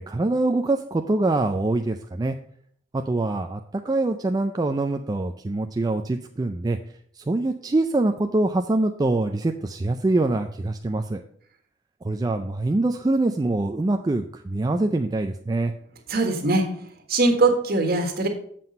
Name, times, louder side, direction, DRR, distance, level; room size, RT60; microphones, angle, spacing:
voice 1, 0.0-2.4 2.9-6.8 7.1-11.2 12.0-15.7, right 2 dB, 20° right, 6 dB, 0.3 m, -24 dB
voice 2, 16.1-16.6 17.1-18.3, right 2 dB, 50° right, 3 dB, 1.5 m, -21 dB
7.5 x 5.8 x 5.3 m, 0.63 s
head